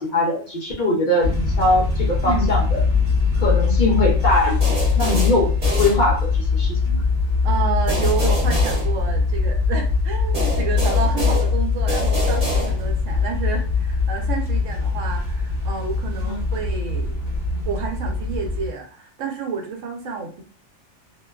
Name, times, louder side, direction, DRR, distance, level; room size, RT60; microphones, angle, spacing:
voice 1, 0.0-2.8 3.4-7.0 16.3-16.4, left 1 dB, 50° left, -2 dB, 0.6 m, -22 dB
sound 1, 1.2-18.7, left 4 dB, 60° right, 0.9 m, -22 dB
voice 2, 2.2-2.6 7.4-17.2 17.7-20.4, right 5 dB, 90° right, 2 dB, 1.0 m, -29 dB
sound 2, 4.6-6.5 7.9-9.6 10.3-13.1, left 2 dB, 40° right, 1.1 m, -25 dB
2.5 x 2.2 x 2.3 m, 0.41 s
omnidirectional pair, 1.2 m